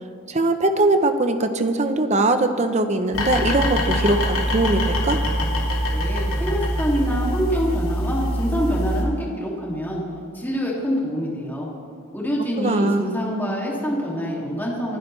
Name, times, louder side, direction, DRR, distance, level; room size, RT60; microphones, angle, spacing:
voice 1, 0.3-5.2 12.6-13.1, right 2 dB, 30° right, 8 dB, 0.8 m, -21 dB
sound 1, 3.1-9.0, equal, 70° left, 2.6 m, -24 dB
voice 2, 5.9-10.0 10.3-11.7 12.1-15.0, equal, 10° left, -4 dB, 2.5 m, -26 dB
26.0 x 11.0 x 3.3 m, 2.8 s
head